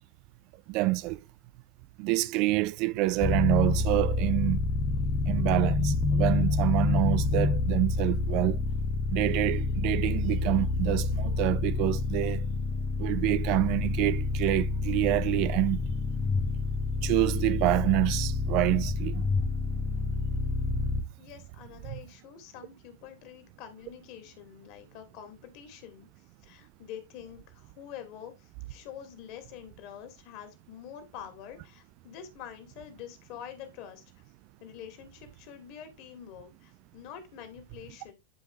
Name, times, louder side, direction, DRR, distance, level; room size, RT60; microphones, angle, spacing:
voice 1, 0.7-1.2 2.0-4.6 5.3-8.6 9.1-12.4 13.0-15.8 17.0-19.2 20.7-20.9, right 19 dB, 40° right, 0.4 m, -27 dB
sound 1, 3.2-21.0, left 3 dB, 25° left, 1.0 m, -28 dB
voice 2, 21.2-34.0 34.6-38.1, left 9 dB, 45° left, 2.5 m, -46 dB
11.0 x 5.2 x 3.2 m
figure-of-eight pair, 90°, 0 cm